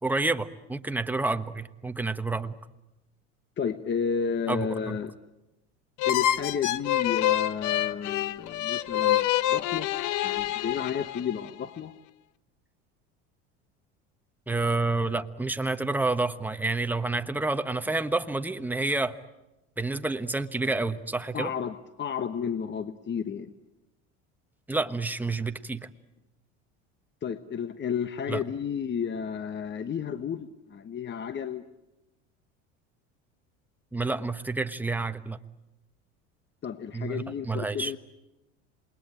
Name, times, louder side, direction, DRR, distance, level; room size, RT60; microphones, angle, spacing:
voice 1, 0.0-2.5 4.5-5.0 14.5-19.2 19.8-21.5 24.7-25.9 28.3-28.4 33.9-35.4 36.9-37.9, right 3 dB, 5° right, 8 dB, 1.2 m, -29 dB
voice 2, 3.6-5.1 6.0-9.9 10.2-11.9 21.3-23.5 27.2-31.6 36.6-38.0, left 7 dB, 30° left, 11 dB, 1.2 m, -32 dB
sound 1, 6.0-11.5, left 13 dB, 60° left, 0.9 m, -27 dB
28.0 x 20.5 x 8.9 m, 0.98 s
supercardioid pair, 95°, 35 cm